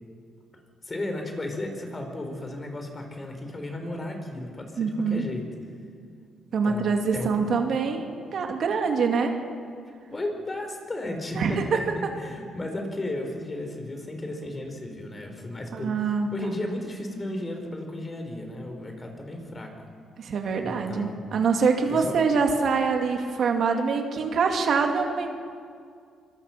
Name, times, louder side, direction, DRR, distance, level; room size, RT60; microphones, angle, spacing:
voice 1, 0.9-5.4 6.6-7.3 10.1-11.8 12.2-19.7 20.6-21.2 21.9-22.1, left 1 dB, 25° left, 4 dB, 4.7 m, -34 dB
voice 2, 4.8-5.2 6.5-9.4 11.4-11.8 15.7-16.3 20.2-25.3, right 5 dB, 60° right, 3 dB, 2.6 m, -25 dB
25.5 x 23.5 x 6.0 m, 2.2 s
cardioid pair, 90°, 0 cm